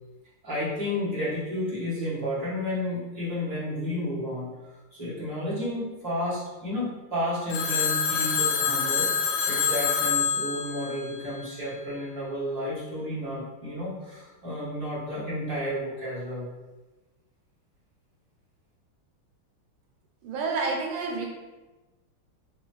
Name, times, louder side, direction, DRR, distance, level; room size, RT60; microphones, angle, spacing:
voice 1, 0.4-4.5 4.9-9.1 9.5-16.5, left 1 dB, 20° right, -10 dB, 1.4 m, -31 dB
Telephone, 7.5-11.7, left 6 dB, 85° left, 1.5 m, -26 dB
voice 2, 20.2-21.2, right 4 dB, 85° right, 0 dB, 1.5 m, -29 dB
3.7 x 3.0 x 3.1 m, 1.2 s
omnidirectional pair, 2.3 m